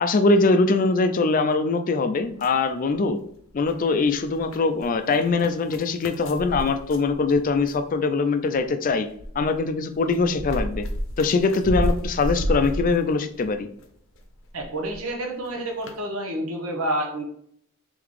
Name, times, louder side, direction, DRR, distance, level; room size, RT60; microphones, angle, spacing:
voice 1, 0.0-3.2 3.5-9.1 9.4-10.9 11.2-13.7, left 3 dB, 40° left, 8 dB, 0.4 m, -22 dB
sound 1, 2.2-3.2 3.5-7.9 8.5-13.8 14.1-15.1 15.4-15.5 15.8-16.0, equal, 65° left, 0.7 m, -31 dB
voice 2, 14.5-17.2, right 1 dB, 85° right, 2 dB, 1.0 m, -29 dB
3.8 x 3.4 x 3.2 m, 0.67 s
head